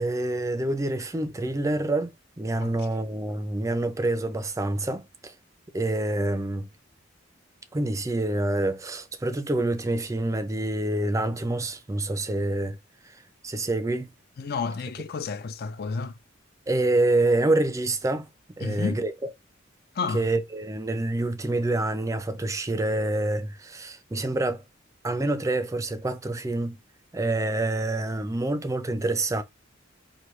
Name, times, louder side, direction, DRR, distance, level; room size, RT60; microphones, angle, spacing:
voice 1, 0.0-5.3 5.7-6.7 7.7-12.8 13.0-13.2 13.4-14.1 16.7-18.3 18.6-19.1 20.1-24.6 25.0-26.8 27.1-29.4, right 2 dB, 15° right, 0.4 m, -27 dB
voice 2, 14.4-16.2 18.6-19.0 19.9-20.3, left 5 dB, 50° left, 0.4 m, -31 dB
4.7 x 2.7 x 3.0 m
head